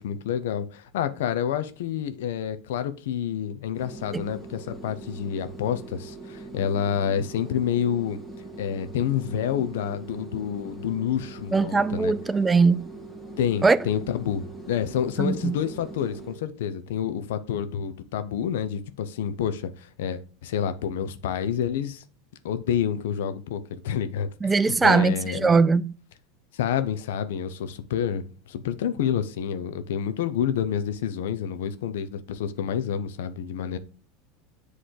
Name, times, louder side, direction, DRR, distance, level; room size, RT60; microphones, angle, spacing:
voice 1, 0.0-8.2 8.6-12.1 13.4-22.0 22.4-25.5 26.5-33.8, left 8 dB, 75° left, 0.6 m, -28 dB
sound 1, 3.7-16.4, right 2 dB, 10° left, 1.6 m, -41 dB
voice 2, 11.5-12.9 13.6-13.8 15.2-15.5 24.4-26.0, right 4 dB, 15° right, 0.3 m, -21 dB
7.9 x 3.2 x 3.7 m
hypercardioid pair, 90°, 0 cm